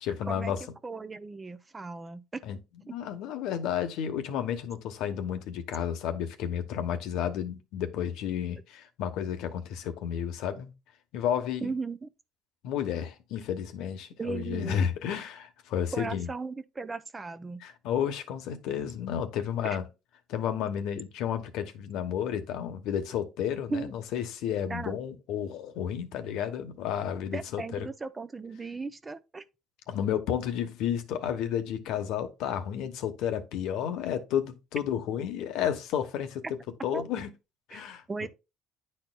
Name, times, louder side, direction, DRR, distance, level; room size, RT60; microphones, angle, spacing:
voice 1, 0.0-0.6 2.4-2.6 2.9-10.7 11.1-11.7 12.6-16.3 17.6-19.9 20.3-27.9 29.9-36.4 36.8-37.3 37.7-38.3, left 9 dB, 75° left, 1.0 m, -32 dB
voice 2, 0.8-2.4 2.9-3.0 11.6-12.1 14.2-14.8 15.9-17.6 19.6-19.8 23.7-23.9 24.7-25.0 27.3-29.4 36.9-37.0 37.7-37.8 38.1-38.3, right 4 dB, 20° right, 0.5 m, -36 dB
10.0 x 4.3 x 2.2 m
cardioid pair, 130°, 0 cm